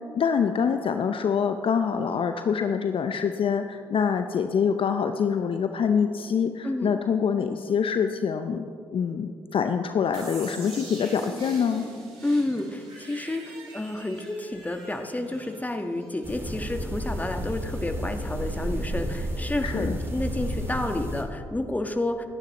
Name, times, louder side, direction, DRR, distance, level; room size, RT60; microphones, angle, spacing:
voice 1, 0.1-8.6 8.9-11.8 19.6-20.0, left 6 dB, 45° left, 7 dB, 0.7 m, -25 dB
sound 1, 10.1-16.9, right 2 dB, 75° right, 3.9 m, -44 dB
voice 2, 12.2-22.3, left 1 dB, 10° left, 6 dB, 1.4 m, -30 dB
sound 2, 16.2-21.2, equal, 20° right, 3.3 m, -31 dB
28.0 x 10.5 x 3.1 m, 2.3 s
hypercardioid pair, 45°, 12 cm